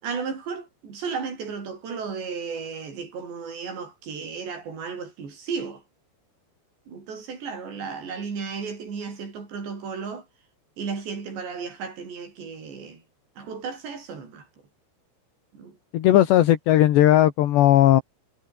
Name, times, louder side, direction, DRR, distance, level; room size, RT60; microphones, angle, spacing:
voice 1, 0.0-5.8 6.9-10.3 10.8-13.0 13.4-14.5 15.5-15.8, right 5 dB, 70° right, 8.8 m, -34 dB
voice 2, 15.9-18.0, left 13 dB, 70° left, 3.7 m, -17 dB
omnidirectional pair, 5.3 m